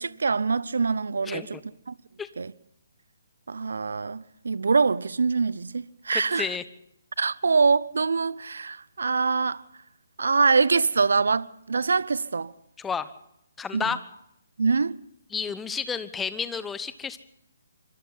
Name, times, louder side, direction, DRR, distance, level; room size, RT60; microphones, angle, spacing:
voice 1, 0.0-1.6 1.9-2.0 2.4-2.5 3.5-6.5 7.2-9.6 10.2-12.5 13.7-13.9 14.6-14.9, right 4 dB, 70° right, 0.7 m, -24 dB
voice 2, 1.2-1.6 2.2-2.3 6.1-6.6 12.8-13.1 13.6-14.0 15.3-17.2, left 6 dB, 10° left, 1.1 m, -31 dB
26.0 x 25.5 x 4.1 m
figure-of-eight pair, 135°, 0 cm